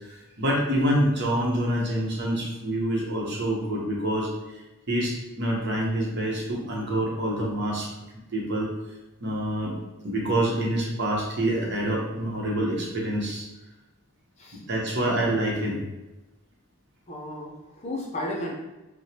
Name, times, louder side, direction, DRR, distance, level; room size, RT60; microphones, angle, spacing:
voice 1, 0.0-4.6 4.9-7.9 8.3-8.7 9.2-9.7 10.0-13.5 14.7-15.8, right 1 dB, 50° right, -2 dB, 0.9 m, -26 dB
voice 2, 17.1-18.6, left 1 dB, 30° left, -2 dB, 0.6 m, -33 dB
4.6 x 2.1 x 2.8 m, 1.1 s
head